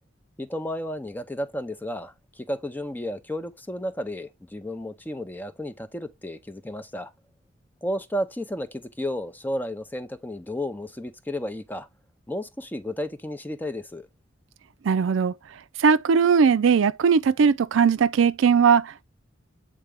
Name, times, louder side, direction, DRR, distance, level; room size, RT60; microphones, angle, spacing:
voice 1, 0.4-7.1 7.8-11.9 12.3-14.1, left 1 dB, 10° left, 0.5 m, -32 dB
voice 2, 14.8-15.3 15.8-19.0, right 6 dB, 75° right, 0.4 m, -19 dB
8.1 x 3.6 x 3.4 m
head